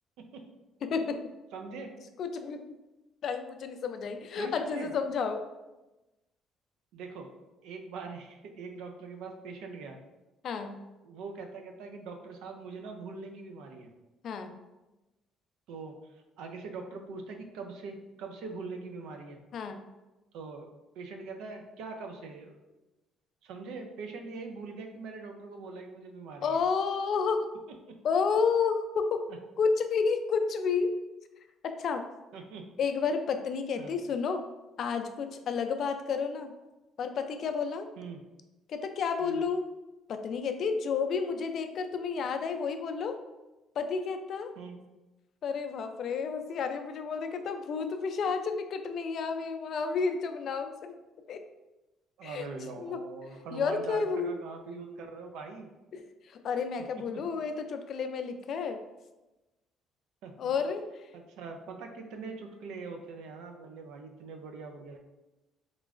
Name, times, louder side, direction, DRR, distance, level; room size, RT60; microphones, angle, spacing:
voice 1, 0.8-1.2 2.2-2.6 3.2-5.5 10.4-10.8 14.2-14.6 19.5-19.8 26.4-27.5 28.0-29.3 29.6-30.9 31.6-32.0 32.8-34.4 34.8-36.5 37.0-37.9 38.7-39.7 40.1-43.2 43.8-44.5 45.4-50.9 51.3-51.4 52.2-52.5 52.8-53.0 53.5-54.3 55.9-58.8 60.4-60.9, left 5 dB, 60° left, 7 dB, 0.3 m, -31 dB
voice 2, 1.5-1.9 4.4-4.9 6.9-7.3 7.6-10.0 11.0-13.9 15.7-16.0 16.4-19.4 20.3-20.7 20.9-22.6 23.4-26.6 32.3-32.7 33.8-34.0 38.0-38.2 39.2-39.4 44.6-44.8 52.2-55.7 57.1-57.2 60.2-60.3 61.1-65.0, right 4 dB, 80° right, 4 dB, 0.5 m, -42 dB
3.7 x 3.0 x 2.4 m, 1.0 s
cardioid pair, 85°, 0 cm